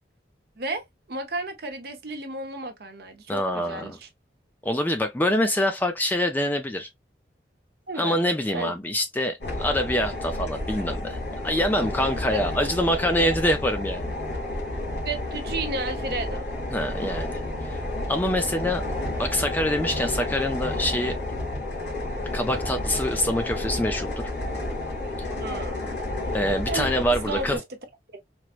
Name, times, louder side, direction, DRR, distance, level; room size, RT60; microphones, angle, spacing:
voice 1, 0.6-4.1 7.9-8.2 8.5-8.7 12.3-12.4 13.2-13.3 15.0-16.5 25.3-26.0 26.7-27.6, right 2 dB, 60° right, 0.8 m, -33 dB
voice 2, 3.3-4.0 4.6-6.9 8.0-14.1 16.7-17.8 18.1-18.8 19.2-21.2 22.3-24.3 26.3-27.6, left 1 dB, 10° left, 0.3 m, -25 dB
sound 1, 9.4-27.6, left 1 dB, 75° left, 2.4 m, -31 dB
4.5 x 2.0 x 2.4 m
head